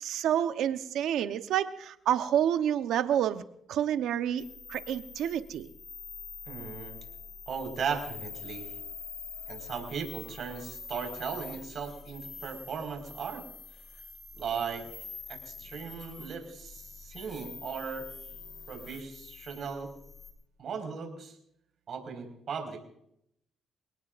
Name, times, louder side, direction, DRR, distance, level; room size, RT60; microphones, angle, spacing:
voice 1, 0.0-3.4 3.7-4.4 4.7-5.7, right 10 dB, 80° right, 9 dB, 1.0 m, -28 dB
sound 1, 4.4-20.3, left 5 dB, 45° left, 5.1 m, -45 dB
voice 2, 6.4-7.0 7.5-8.7 9.5-13.4 14.3-14.8 15.3-18.1 18.7-19.9 20.6-21.4 21.9-22.8, right 6 dB, 60° right, 4 dB, 5.0 m, -37 dB
28.0 x 18.0 x 2.6 m, 0.75 s
cardioid pair, 90°, 0 cm